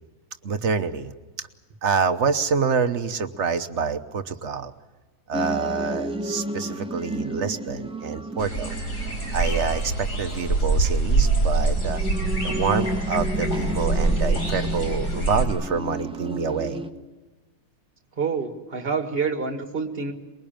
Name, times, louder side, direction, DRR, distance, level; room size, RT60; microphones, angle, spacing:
voice 1, 0.4-1.5 1.8-4.7 5.3-8.7 9.3-12.0 12.4-16.8, right 5 dB, 45° right, 8 dB, 1.0 m, -27 dB
sound 1, 5.3-16.9, equal, 5° right, 0.6 m, -32 dB
sound 2, 8.4-15.4, right 3 dB, 40° left, 4.6 m, -24 dB
voice 2, 18.2-20.1, right 5 dB, 30° right, 5 dB, 2.2 m, -27 dB
23.0 x 21.5 x 8.9 m, 1.2 s
omnidirectional pair, 2.1 m